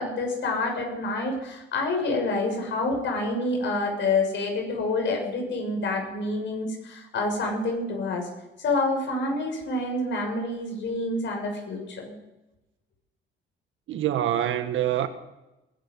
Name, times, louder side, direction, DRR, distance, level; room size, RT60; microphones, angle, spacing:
voice 1, 0.0-8.3 8.6-12.1, left 2 dB, 70° left, 6.7 m, -27 dB
voice 2, 13.9-15.1, right 11 dB, 80° right, 1.6 m, -25 dB
21.0 x 11.5 x 5.6 m
cardioid pair, 90°, 20 cm